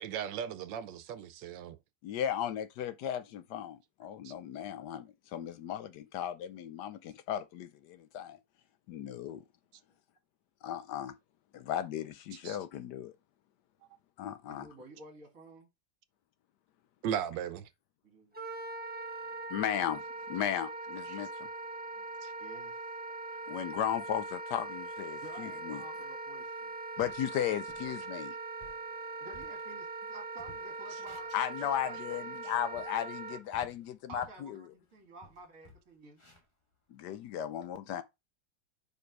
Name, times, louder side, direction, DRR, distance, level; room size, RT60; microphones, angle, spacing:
voice 1, 0.0-1.8 4.2-4.3 12.4-12.6 17.0-17.7 21.1-21.3 22.2-22.3, right 9 dB, 70° right, 1.3 m, -37 dB
voice 2, 2.0-8.4 8.9-9.4 10.6-11.1 11.5-13.1 14.2-14.7 19.5-20.0 20.3-21.5 23.5-25.8 27.0-28.4 31.3-34.6 36.9-38.0, left 10 dB, 70° left, 1.0 m, -36 dB
voice 3, 14.5-15.7 18.0-18.4 22.4-22.8 25.2-26.8 29.2-31.3 31.6-32.5 34.1-36.2, right 2 dB, 45° right, 2.3 m, -51 dB
Wind instrument woodwind instrument, 18.3-33.4, right 3 dB, 10° right, 0.7 m, -41 dB
sound 1, 24.7-25.5 25.9-26.1 26.6-26.7 27.0-27.3 27.7-28.0 28.4-30.1 30.4-31.9 32.3-34.5 34.8-35.0 35.2-37.4, left 1 dB, 15° left, 1.3 m, -57 dB
5.2 x 4.9 x 4.6 m
omnidirectional pair, 2.1 m